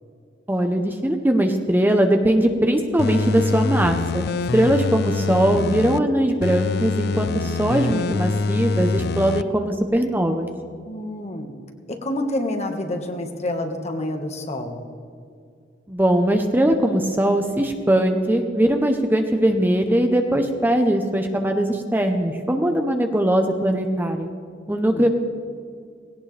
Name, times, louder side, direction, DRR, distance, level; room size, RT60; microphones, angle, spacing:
voice 1, 0.5-4.3 4.5-10.5 15.9-24.3 24.7-25.1, right 1 dB, 10° right, 4 dB, 0.8 m, -20 dB
sound 1, 3.0-6.0 6.4-9.4 9.8-9.9, left 4 dB, 60° left, 0.4 m, -25 dB
voice 2, 10.8-11.5 11.9-14.8 24.7-25.1, left 1 dB, 35° left, 4 dB, 1.5 m, -28 dB
18.5 x 17.5 x 3.4 m, 2.2 s
head